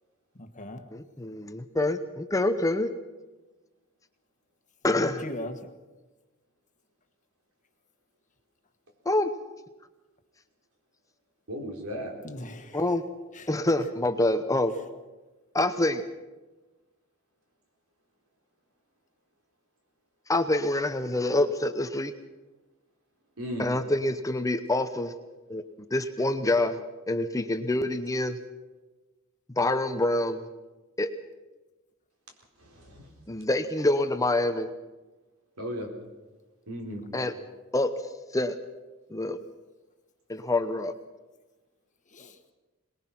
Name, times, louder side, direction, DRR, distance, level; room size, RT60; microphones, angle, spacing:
voice 1, 0.4-0.8 4.9-5.6 12.2-12.8 13.3-13.5 42.1-42.4, left 1 dB, 35° left, 6 dB, 1.5 m, -39 dB
voice 2, 0.9-2.9 4.8-5.2 9.1-9.3 12.7-13.0 13.5-14.7 15.5-16.0 20.3-22.1 23.6-25.1 25.5-25.6 25.9-28.4 29.6-30.5 31.0-31.1 33.3-34.7 37.1-37.3 37.7-37.9 38.3-38.6 39.1-39.4 40.3-40.9, left 2 dB, 15° left, 9 dB, 0.8 m, -26 dB
voice 3, 11.5-12.2 23.4-23.7 32.6-33.1 35.6-35.9 36.7-37.0, equal, 70° right, 1 dB, 4.2 m, -35 dB
22.5 x 20.5 x 5.9 m, 1.2 s
head